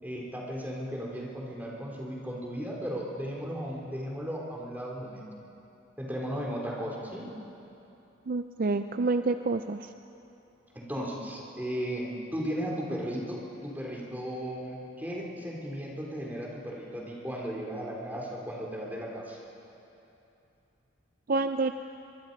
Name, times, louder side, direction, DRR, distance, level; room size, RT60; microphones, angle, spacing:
voice 1, 0.0-5.2 6.0-7.3 10.7-19.4, equal, 10° right, -3 dB, 3.3 m, -36 dB
voice 2, 8.3-9.9 21.3-21.7, right 3 dB, 45° right, 9 dB, 0.4 m, -28 dB
24.0 x 23.5 x 5.3 m, 2.9 s
head